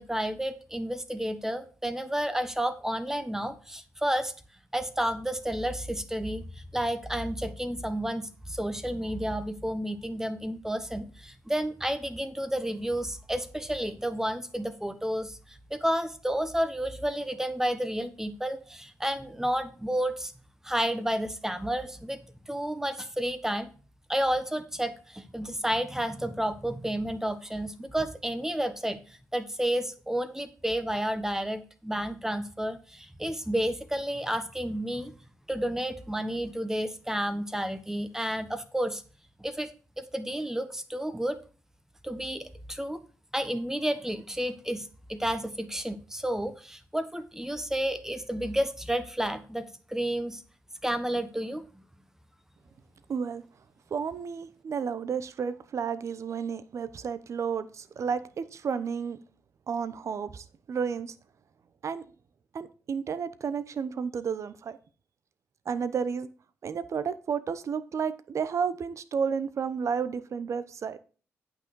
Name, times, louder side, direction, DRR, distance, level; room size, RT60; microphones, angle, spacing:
voice 1, 0.0-4.3 4.7-15.4 15.7-20.3 20.6-23.7 24.1-29.0 29.3-35.1 35.5-39.0 39.4-39.7 40.0-41.4 42.0-43.0 43.3-50.4 50.8-51.6, right 1 dB, 10° right, 11 dB, 1.2 m, -31 dB
voice 2, 53.1-53.4 53.9-59.2 59.7-61.1 61.8-62.0 62.5-64.8 65.7-66.3 66.6-71.0, right 6 dB, 60° right, 14 dB, 0.8 m, -32 dB
9.0 x 6.0 x 4.7 m, 0.38 s
supercardioid pair, 55°, 6 cm